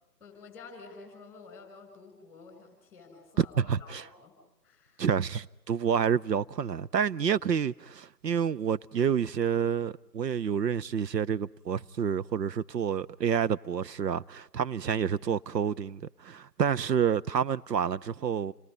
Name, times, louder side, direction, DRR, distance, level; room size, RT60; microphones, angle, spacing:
voice 1, 0.2-4.4 4.6-5.1, left 4 dB, 5° left, 7.3 m, -50 dB
voice 2, 3.4-4.1 5.0-18.5, right 7 dB, 75° right, 0.8 m, -28 dB
29.5 x 22.0 x 5.4 m
figure-of-eight pair, 155°, 49 cm